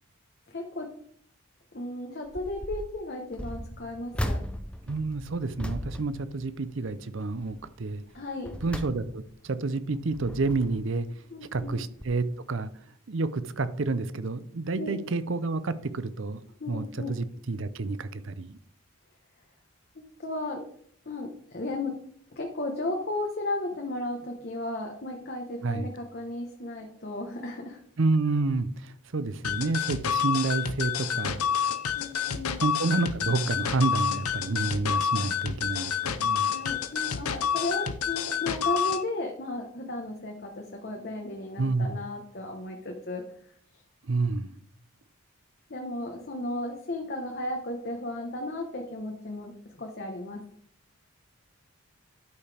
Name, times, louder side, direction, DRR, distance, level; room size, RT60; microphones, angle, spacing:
voice 1, 0.5-0.9 1.7-4.4 8.1-8.5 11.3-11.8 14.7-15.0 16.6-17.1 20.2-20.6 21.0-22.0 22.3-27.8 31.9-32.6 36.5-43.2 45.7-50.4, left 2 dB, 45° left, 1.1 m, -34 dB
sound 1, 2.3-2.9 3.3-7.0 7.4-7.7 8.2-9.5 10.0-10.9 11.6-11.8 12.0-12.1, equal, 5° left, 0.5 m, -37 dB
voice 2, 4.9-8.0 8.6-11.1 11.5-12.7 13.1-16.4 16.7-18.6 25.6-25.9 28.0-31.4 32.6-36.5 41.6-42.0 44.0-44.5, right 3 dB, 55° right, 0.6 m, -29 dB
sound 2, 29.4-39.0, left 8 dB, 85° left, 0.7 m, -28 dB
12.5 x 5.6 x 3.4 m
head